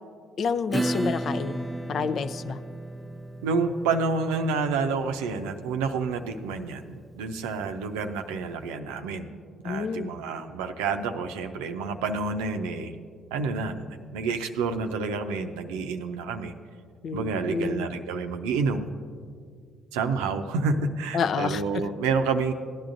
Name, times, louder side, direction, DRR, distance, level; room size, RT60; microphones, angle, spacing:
voice 1, 0.4-2.6 9.6-10.1 17.0-17.9 21.1-21.6, left 5 dB, 60° left, 12 dB, 0.5 m, -29 dB
Acoustic guitar / Strum, 0.7-7.9, right 1 dB, 10° right, 0.5 m, -35 dB
voice 2, 3.4-9.3 9.6-12.9 13.3-16.5 17.1-18.9 19.9-22.5, right 4 dB, 85° right, 7 dB, 0.6 m, -29 dB
16.5 x 10.5 x 2.6 m, 2.1 s
hypercardioid pair, 55°, 0 cm